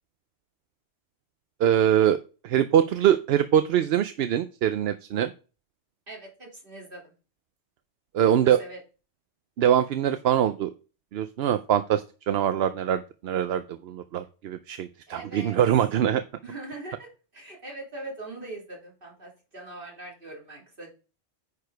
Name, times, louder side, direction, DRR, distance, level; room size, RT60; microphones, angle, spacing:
voice 1, 1.6-2.2 2.4-5.3 8.1-8.6 9.6-10.7 11.1-16.2, right 10 dB, 65° right, 11 dB, 0.8 m, -23 dB
voice 2, 6.1-7.1 8.2-8.8 15.1-15.6 16.4-20.9, right 2 dB, 50° right, -2 dB, 3.1 m, -41 dB
9.7 x 4.8 x 4.6 m, 0.34 s
omnidirectional pair, 1.2 m